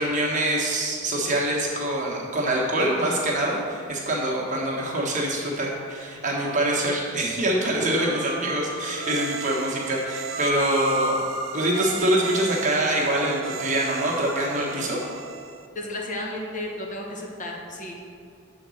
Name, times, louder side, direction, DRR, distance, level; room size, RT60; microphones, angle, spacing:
voice 1, 0.0-11.2 11.5-15.0, right 1 dB, 40° right, -3 dB, 1.4 m, -25 dB
sound 1, 6.3-7.0 8.0-9.2 10.1-11.6, left 1 dB, 10° right, 1.6 m, -32 dB
sound 2, 9.0-15.7, right 5 dB, 80° right, 0.5 m, -36 dB
voice 2, 15.7-18.0, left 1 dB, 40° left, -1 dB, 1.0 m, -33 dB
7.9 x 4.1 x 6.3 m, 2.4 s
head